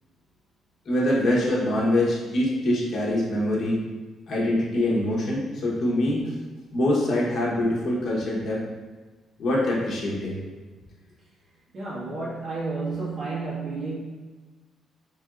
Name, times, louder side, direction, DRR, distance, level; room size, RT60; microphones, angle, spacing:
voice 1, 0.8-3.8 4.3-6.3 6.7-8.6 9.4-10.6, left 1 dB, 55° left, -5 dB, 1.0 m, -24 dB
voice 2, 11.7-14.0, right 3 dB, 45° right, -7 dB, 1.5 m, -31 dB
4.3 x 3.2 x 2.4 m, 1.3 s
cardioid pair, 90°, 0 cm